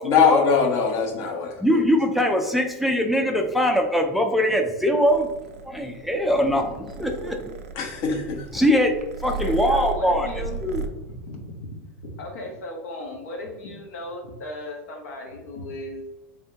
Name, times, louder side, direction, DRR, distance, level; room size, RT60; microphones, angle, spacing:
voice 1, 0.0-1.8 7.7-8.5, left 6 dB, 50° left, 1 dB, 1.0 m, -22 dB
voice 2, 1.6-5.3 5.6-7.5 8.5-8.9 9.2-10.3 10.6-10.8, equal, ahead, 3 dB, 0.4 m, -22 dB
Purr, 5.0-10.9, right 4 dB, 90° right, 0.5 m, -35 dB
voice 3, 9.2-16.1, left 1 dB, 75° left, 1 dB, 1.1 m, -36 dB
3.5 x 3.4 x 2.8 m, 1.1 s
hypercardioid pair, 120°, 8 cm